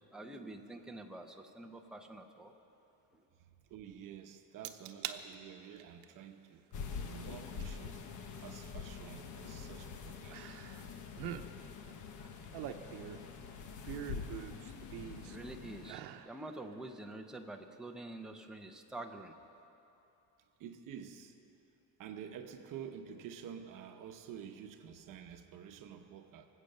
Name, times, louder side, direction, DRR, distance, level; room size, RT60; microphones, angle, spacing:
voice 1, 0.0-2.5 15.2-19.3, right 2 dB, ahead, 2 dB, 0.7 m, -47 dB
voice 2, 3.4-6.6 7.1-8.0 8.4-10.4 11.7-11.8 13.0-13.1 20.6-21.4 22.0-26.5, right 8 dB, 55° right, 6 dB, 1.0 m, -49 dB
sound 1, 4.6-5.2 5.6-6.0 7.6-7.7 10.3-10.9 11.1-11.5 12.2-13.3 13.8-15.4 15.8-16.3 16.7-16.8, right 11 dB, 85° right, 0.9 m, -44 dB
sound 2, 6.7-15.9, left 6 dB, 50° left, 1.1 m, -45 dB
24.0 x 8.4 x 6.7 m, 2.9 s
cardioid pair, 155°, 38 cm